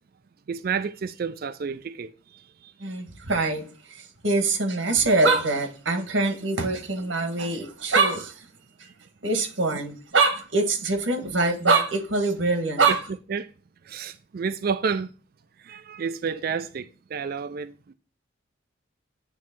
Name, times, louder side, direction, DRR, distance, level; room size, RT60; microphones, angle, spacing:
voice 1, 0.5-2.7 12.9-13.0 13.3-13.5 13.9-15.1 15.6-17.9, right 6 dB, 50° right, 0.4 m, -30 dB
voice 2, 2.8-8.5 9.2-13.0, right 3 dB, 90° right, 1.6 m, -24 dB
9.1 x 3.2 x 6.0 m
head